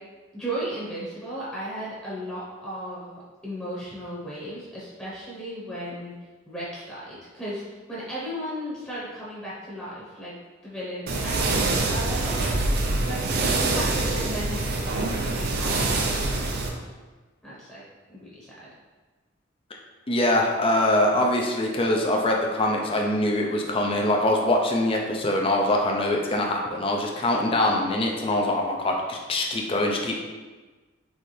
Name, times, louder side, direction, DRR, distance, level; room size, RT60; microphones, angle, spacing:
voice 1, 0.3-6.1 6.5-7.6 7.9-10.3 10.6-12.5 13.0-16.5 17.4-17.8 18.1-18.7, right 1 dB, 5° left, -8 dB, 1.0 m, -35 dB
sound 1, 11.1-16.7, right 2 dB, 55° right, 0.5 m, -25 dB
voice 2, 20.1-30.2, left 1 dB, 30° left, 0 dB, 0.5 m, -23 dB
4.2 x 3.3 x 3.2 m, 1.3 s
head